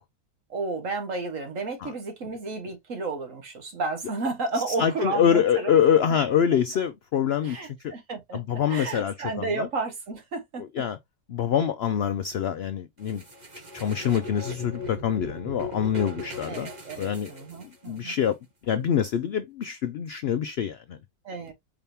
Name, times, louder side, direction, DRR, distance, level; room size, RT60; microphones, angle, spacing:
voice 1, 0.5-5.8 7.4-10.9 16.4-18.1 21.3-21.5, right 3 dB, 55° right, 1.7 m, -32 dB
voice 2, 4.7-7.6 7.8-7.9 8.3-9.7 10.6-11.0 11.3-13.2 13.7-16.7 17.0-17.3 17.9-18.4 18.7-21.0, left 8 dB, 80° left, 0.5 m, -25 dB
sound 1, 13.1-18.0, left 1 dB, 30° right, 1.3 m, -39 dB
4.8 x 3.4 x 2.7 m
omnidirectional pair, 1.6 m